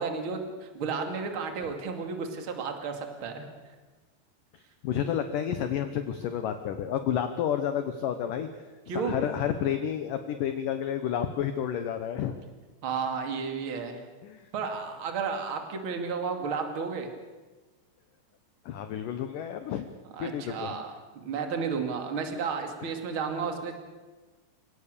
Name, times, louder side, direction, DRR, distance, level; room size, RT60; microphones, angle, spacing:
voice 1, 0.0-3.4 8.9-9.2 12.8-14.0 14.5-17.1 20.1-23.8, right 5 dB, 35° right, 5 dB, 2.5 m, -32 dB
voice 2, 4.5-8.5 8.9-12.3 14.2-14.5 18.7-19.9 20.2-20.8 22.8-22.9, left 9 dB, 75° left, 8 dB, 2.0 m, -30 dB
29.5 x 17.5 x 6.8 m, 1.3 s
omnidirectional pair, 5.1 m